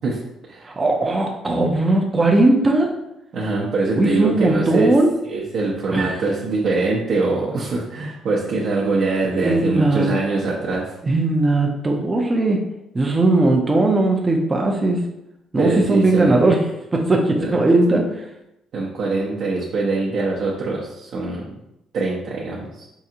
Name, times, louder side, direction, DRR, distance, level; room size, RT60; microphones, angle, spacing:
voice 1, 0.0-0.7 3.3-4.9 5.2-11.0 15.6-16.5 17.4-17.5 18.7-21.6 21.9-22.9, right 3 dB, 55° right, -5 dB, 0.6 m, -23 dB
voice 2, 0.6-2.9 4.0-5.1 5.9-6.2 9.3-10.1 11.0-12.6 12.9-15.0 15.5-16.6 16.9-18.2, right 2 dB, 15° right, 0 dB, 0.4 m, -18 dB
4.7 x 2.4 x 2.7 m, 0.85 s
cardioid pair, 150°, 0 cm